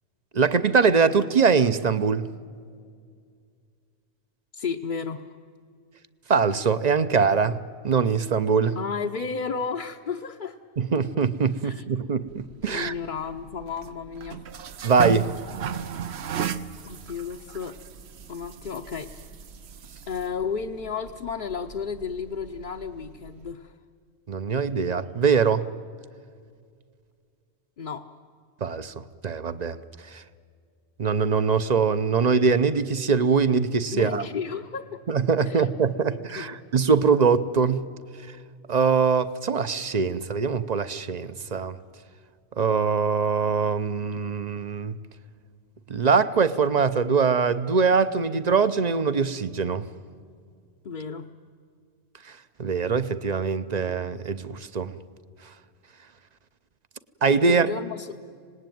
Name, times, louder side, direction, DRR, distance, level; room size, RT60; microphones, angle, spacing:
voice 1, 0.3-2.3 6.3-7.6 7.8-8.8 10.8-12.9 14.8-15.3 24.3-25.7 28.6-28.9 29.2-29.8 30.1-30.2 31.0-34.2 35.1-37.8 38.7-41.8 42.6-44.9 45.9-49.9 52.3-52.4 52.6-54.9 57.2-57.7, right 5 dB, 40° right, 13 dB, 0.8 m, -22 dB
voice 2, 4.5-5.3 8.8-10.6 11.6-11.8 12.7-14.4 16.8-17.8 18.3-19.3 20.1-23.7 27.8-28.1 33.9-35.0 35.5-35.7 36.1-36.6 50.8-51.3 57.4-58.2, left 6 dB, 50° left, 2 dB, 0.8 m, -33 dB
sound 1, 12.3-23.5, right 8 dB, 70° right, 1.0 m, -37 dB
26.0 x 19.0 x 9.3 m, 2.2 s
omnidirectional pair, 1.1 m